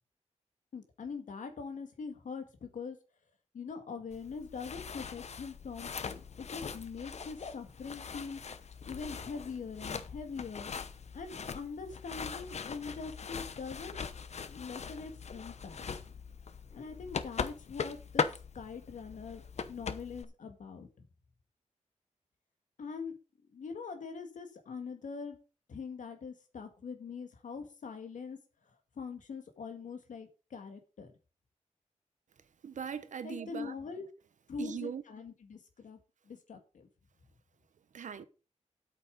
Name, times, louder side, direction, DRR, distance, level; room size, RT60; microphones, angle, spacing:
voice 1, 0.7-3.0 3.5-10.7 11.1-14.0 14.5-15.8 16.7-18.2 18.5-19.4 19.7-21.1 22.8-23.2 23.5-25.4 25.7-28.4 28.6-31.1 33.2-34.1 34.5-36.0 36.3-36.9, left 5 dB, 90° left, 1.9 m, -43 dB
sound 1, 4.1-20.2, left 5 dB, 60° left, 0.9 m, -40 dB
voice 2, 32.6-33.7 34.6-35.0 37.9-38.2, right 7 dB, 80° right, 1.1 m, -40 dB
8.6 x 8.4 x 5.2 m
wide cardioid pair, 125°, 13 cm